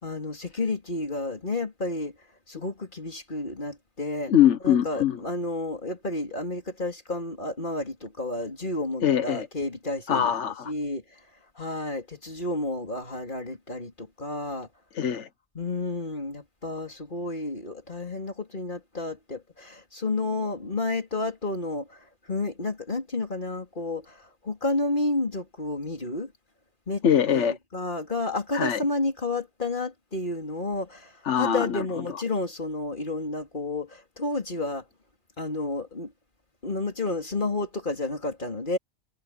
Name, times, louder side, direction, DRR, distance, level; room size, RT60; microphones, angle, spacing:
voice 1, 0.0-2.1 2.5-4.3 4.6-10.3 10.6-11.2 11.6-14.7 15.6-26.3 26.9-27.1 27.3-34.8 35.4-36.1 36.6-38.8, left 2 dB, 45° left, 3.8 m, -31 dB
voice 2, 4.3-5.2 9.0-9.5 10.1-10.7 14.9-15.3 27.0-27.6 28.5-28.8 31.2-31.8, left 9 dB, 90° left, 1.3 m, -22 dB
omnidirectional pair, 1.2 m